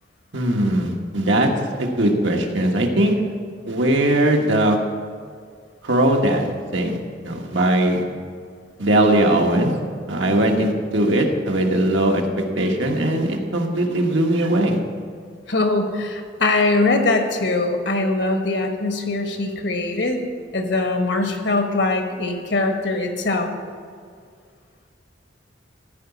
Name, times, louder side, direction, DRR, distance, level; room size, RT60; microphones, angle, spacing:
voice 1, 0.3-1.5 1.8-3.1 3.7-4.8 5.8-7.0 7.2-8.0 8.8-9.7 10.1-14.8, right 1 dB, 90° right, 2 dB, 1.4 m, -20 dB
voice 2, 15.5-20.2 20.5-23.5, left 2 dB, 70° left, 5 dB, 1.4 m, -22 dB
14.5 x 4.9 x 8.2 m, 2.1 s
head